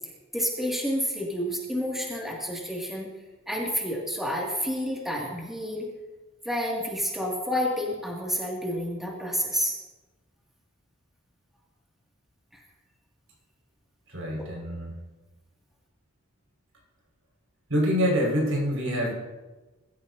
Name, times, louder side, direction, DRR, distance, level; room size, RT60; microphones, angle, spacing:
voice 1, 0.3-3.1 3.5-5.9 6.4-9.8 12.5-12.6, equal, ahead, -3 dB, 2.4 m, -29 dB
voice 2, 14.1-14.9 17.7-19.1, equal, 75° right, -1 dB, 5.6 m, -25 dB
23.0 x 13.5 x 2.8 m, 1.2 s
head